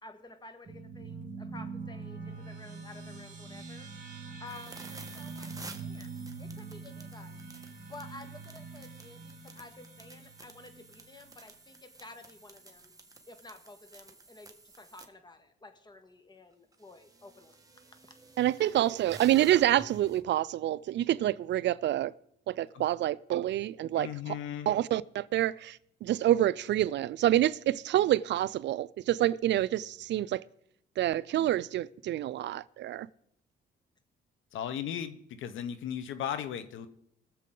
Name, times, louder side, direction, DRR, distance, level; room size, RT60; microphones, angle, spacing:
voice 1, 0.0-3.9 4.4-7.5 7.8-12.9 13.3-17.6 18.6-18.7, left 2 dB, 20° left, 1.7 m, -51 dB
sound 1, 0.6-11.4, right 4 dB, 40° right, 3.0 m, -44 dB
sound 2, 4.5-15.0 16.5-20.2, right 3 dB, 15° right, 1.5 m, -52 dB
voice 2, 18.4-22.1 22.5-24.4 24.7-30.4 31.0-33.1, right 13 dB, 65° right, 0.4 m, -27 dB
voice 3, 24.0-24.7 34.5-36.9, left 9 dB, 80° left, 1.0 m, -36 dB
22.0 x 7.4 x 3.9 m
cardioid pair, 90°, 20 cm